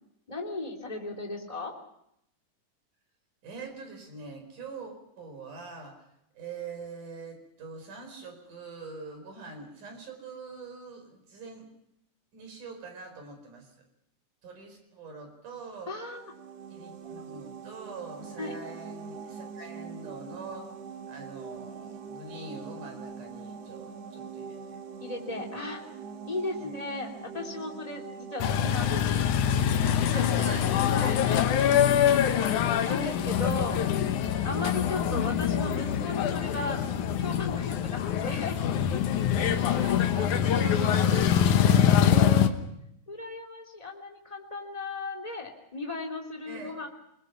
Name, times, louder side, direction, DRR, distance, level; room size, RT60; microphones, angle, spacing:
voice 1, 0.3-1.8 15.9-16.3 18.4-18.5 25.0-25.8 26.2-29.2 30.1-32.2 32.8-33.8 34.4-36.8 37.2-38.6 42.1-42.6 43.1-46.9, left 2 dB, 10° left, 0 dB, 2.9 m, -36 dB
voice 2, 3.4-6.1 6.3-11.7 12.3-13.7 14.4-15.9 16.7-20.7 21.1-24.8 30.1-31.2 32.0-32.3 39.4-42.0 46.5-46.9, right 4 dB, 85° right, 4 dB, 6.3 m, -43 dB
sound 1, 15.9-30.6, right 6 dB, 65° right, 2.4 m, -43 dB
sound 2, 28.4-42.5, left 9 dB, 75° left, 2.6 m, -24 dB
27.5 x 20.5 x 6.0 m, 0.77 s
omnidirectional pair, 3.5 m